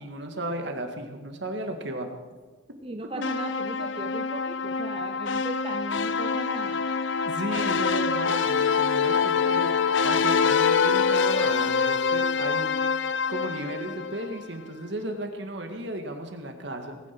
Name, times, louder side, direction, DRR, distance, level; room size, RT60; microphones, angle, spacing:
voice 1, 0.0-2.1 7.2-9.7 10.0-12.7 13.3-17.0, right 1 dB, 60° right, 5 dB, 2.1 m, -34 dB
voice 2, 2.8-6.9 7.6-7.7, right 2 dB, 30° right, 5 dB, 0.7 m, -38 dB
sound 1, 3.2-14.5, left 5 dB, 70° left, 0.6 m, -25 dB
19.0 x 10.5 x 6.2 m, 1.4 s
head